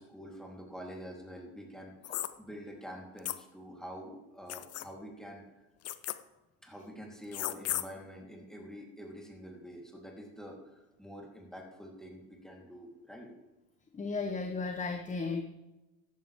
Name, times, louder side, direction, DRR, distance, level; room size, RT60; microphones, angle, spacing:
voice 1, 0.0-5.4 6.6-13.3, equal, ahead, -1 dB, 3.8 m, -47 dB
sound 1, 2.0-2.3 3.2-3.4 4.5-4.8 5.8-6.1 7.3-7.8, left 13 dB, 35° left, 0.8 m, -34 dB
voice 2, 13.9-15.4, left 4 dB, 15° left, 6 dB, 1.1 m, -34 dB
15.0 x 11.0 x 3.7 m, 1.0 s
hypercardioid pair, 90°, 43 cm